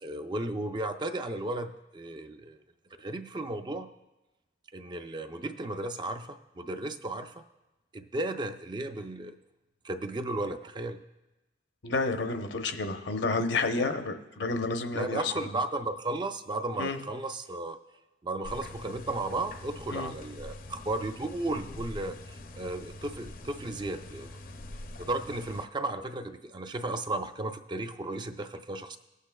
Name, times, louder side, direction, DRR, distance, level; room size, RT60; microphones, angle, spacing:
voice 1, 0.0-2.6 3.0-3.9 4.7-7.4 7.9-9.3 9.8-11.0 13.8-13.9 14.9-17.8 18.2-24.4 25.0-29.0, right 2 dB, 25° right, 8 dB, 0.4 m, -34 dB
voice 2, 11.8-15.5 16.8-17.0 19.9-20.1, left 3 dB, 80° left, 6 dB, 0.8 m, -30 dB
sound 1, 18.4-25.6, left 1 dB, 50° left, 0.5 m, -44 dB
18.0 x 8.2 x 2.2 m, 1.0 s
head